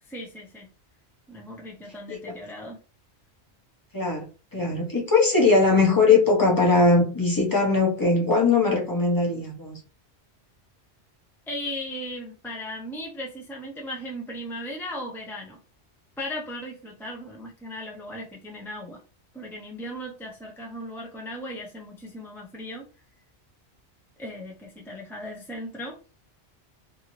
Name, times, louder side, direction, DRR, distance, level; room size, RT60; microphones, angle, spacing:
voice 1, 0.0-0.7 1.3-2.8 11.5-15.6 16.2-19.0 19.3-22.9 24.2-26.0, left 1 dB, 5° left, 0.3 m, -37 dB
voice 2, 3.9-9.8, left 3 dB, 20° left, 0.7 m, -21 dB
2.6 x 2.6 x 3.0 m
omnidirectional pair, 1.2 m